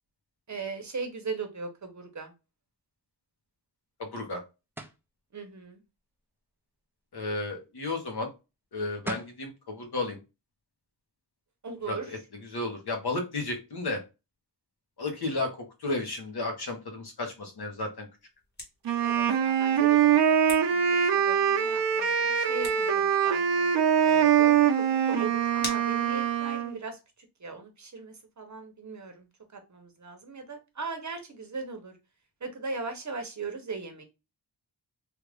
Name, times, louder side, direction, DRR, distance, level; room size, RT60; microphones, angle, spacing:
voice 1, 0.5-2.3 5.3-5.8 11.6-12.1 19.0-20.8 21.1-23.7 24.0-27.0 27.4-31.9 32.4-34.0, right 4 dB, 45° right, 5 dB, 0.8 m, -39 dB
voice 2, 4.0-4.4 7.1-8.3 8.7-10.2 11.9-14.0 15.0-18.1, left 2 dB, 65° left, 2 dB, 1.1 m, -33 dB
sound 1, 4.8-5.1 8.7-8.8 9.1-9.4, right 1 dB, 5° right, 0.4 m, -37 dB
sound 2, 18.1-26.8, left 1 dB, 25° left, 1.2 m, -46 dB
Wind instrument woodwind instrument, 18.8-26.8, right 8 dB, 85° right, 0.6 m, -23 dB
3.3 x 2.5 x 3.3 m, 0.27 s
wide cardioid pair, 125°, 41 cm